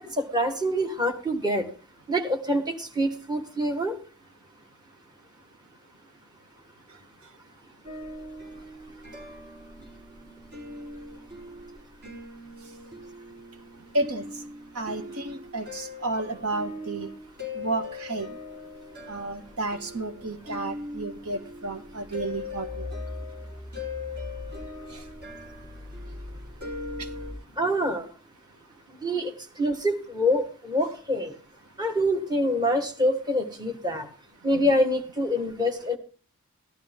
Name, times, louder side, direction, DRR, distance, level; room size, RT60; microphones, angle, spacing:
voice 1, 0.2-1.7 2.1-4.0 27.6-28.1 29.0-31.3 31.8-34.1 34.4-36.0, equal, 20° right, 4 dB, 1.7 m, -25 dB
sound 1, 7.8-27.3, left 2 dB, 45° right, 4.7 m, -40 dB
voice 2, 14.7-17.1 17.5-18.4 19.1-22.9 24.9-25.0 27.0-27.1 34.5-34.7, right 2 dB, 80° right, 6 dB, 1.8 m, -32 dB
15.0 x 12.0 x 3.6 m, 0.40 s
head